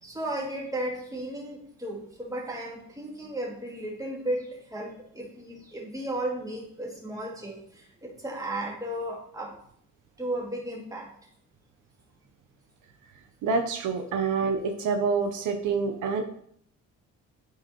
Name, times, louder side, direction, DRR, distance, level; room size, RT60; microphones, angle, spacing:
voice 1, 0.0-9.6 10.2-11.1, right 1 dB, 10° right, -2 dB, 2.1 m, -34 dB
voice 2, 13.4-16.2, right 5 dB, 80° right, 6 dB, 0.8 m, -27 dB
9.4 x 4.7 x 3.1 m, 0.67 s
cardioid pair, 90°, 30 cm